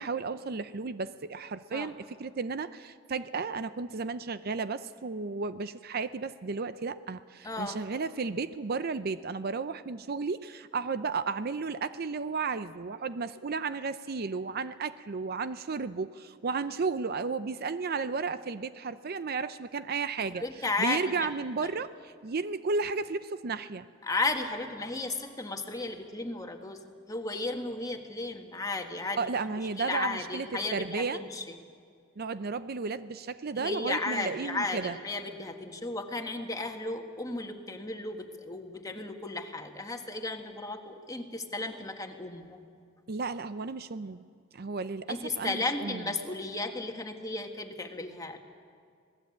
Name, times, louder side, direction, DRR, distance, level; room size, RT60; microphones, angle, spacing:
voice 1, 0.0-20.4 20.8-23.8 29.2-30.5 30.7-31.2 32.2-35.0 43.1-44.3 44.5-46.0, right 4 dB, 50° right, 13 dB, 0.6 m, -33 dB
voice 2, 7.4-7.8 20.2-21.3 21.6-21.7 24.0-26.8 27.1-31.6 33.6-42.6 45.1-48.4, left 2 dB, 20° left, 4 dB, 1.7 m, -34 dB
26.5 x 18.5 x 8.6 m, 2.3 s
head